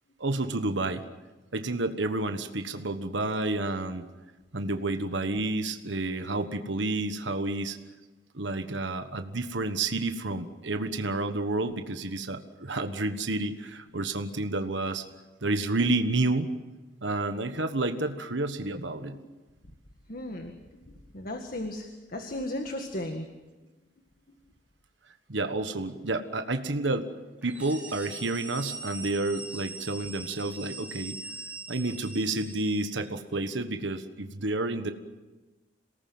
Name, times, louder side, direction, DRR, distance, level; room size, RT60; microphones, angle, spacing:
voice 1, 0.2-1.0 1.5-4.1 4.5-7.8 8.3-15.0 15.4-16.5 17.0-19.2 25.3-27.1 27.4-31.2 31.7-34.9, right 2 dB, 75° right, 7 dB, 1.4 m, -30 dB
voice 2, 20.1-20.5 21.1-23.2, left 1 dB, 50° left, 5 dB, 1.8 m, -35 dB
sound 1, 27.4-33.1, right 3 dB, 10° right, 4.5 m, -42 dB
27.5 x 19.0 x 7.8 m, 1.2 s
head